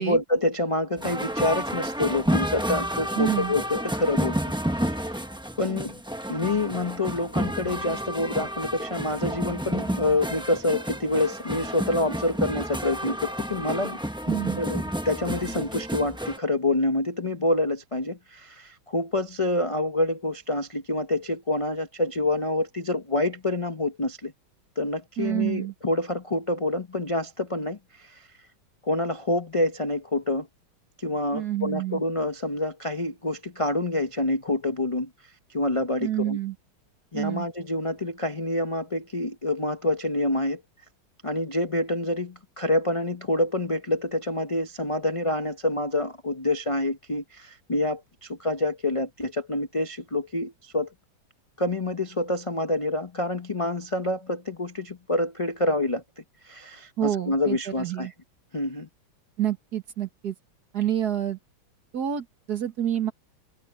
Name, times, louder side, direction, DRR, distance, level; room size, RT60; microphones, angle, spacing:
voice 1, 0.0-4.4 4.7-5.2 5.6-6.0 6.3-14.0 14.6-24.3 24.8-28.3 28.8-30.5 31.0-35.1 35.5-36.4 37.1-40.6 41.2-50.9 51.6-58.1 58.5-58.9, left 2 dB, 40° left, 0.4 m, -27 dB
sound 1, 1.0-16.4, equal, 5° right, 0.6 m, -30 dB
voice 2, 3.2-3.5 14.3-14.6 25.2-25.7 31.3-32.0 36.0-36.6 37.1-37.5 57.0-58.1 59.4-60.4 60.7-61.4 61.9-63.1, right 11 dB, 50° right, 2.1 m, -28 dB
omnidirectional pair, 2.2 m